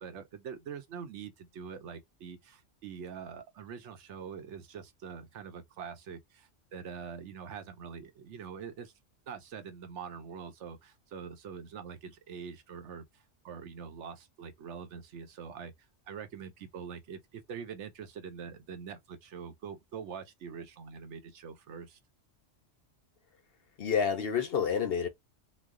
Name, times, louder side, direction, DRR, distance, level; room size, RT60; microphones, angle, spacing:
voice 1, 0.0-8.9 9.3-15.7 16.1-22.0, right 6 dB, 70° right, 0.9 m, -44 dB
voice 2, 23.8-25.1, left 7 dB, 60° left, 0.8 m, -29 dB
3.1 x 2.1 x 3.6 m
omnidirectional pair, 1.3 m